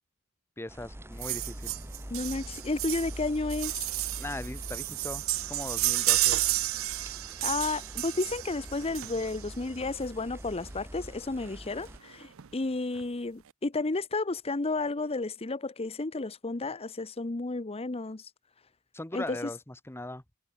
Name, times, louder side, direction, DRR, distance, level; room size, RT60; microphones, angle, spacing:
voice 1, 0.6-1.7 4.2-6.4 18.9-20.2, left 1 dB, 10° left, 1.1 m, -39 dB
sound 1, 0.7-12.0, equal, 10° right, 2.2 m, -44 dB
sound 2, 1.2-9.5 10.6-10.7 11.0-11.1 11.4-11.5 11.9-12.5 13.0-13.1, right 18 dB, 70° right, 0.6 m, -31 dB
voice 2, 2.1-3.9 7.4-18.3 19.1-19.4, left 3 dB, 30° left, 0.8 m, -32 dB
head